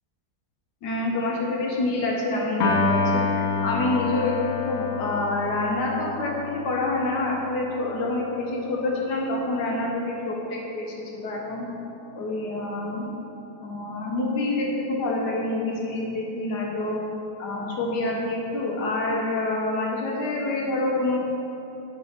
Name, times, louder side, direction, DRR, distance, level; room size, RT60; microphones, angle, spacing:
voice 1, 0.8-4.4 4.7-11.7 12.1-13.2 13.6-17.0 17.4-21.2, left 2 dB, 65° left, -1 dB, 1.5 m, -27 dB
Piano, 2.6-9.0, left 4 dB, 50° left, 1.1 m, -28 dB
5.6 x 5.5 x 5.8 m, 2.9 s
omnidirectional pair, 2.0 m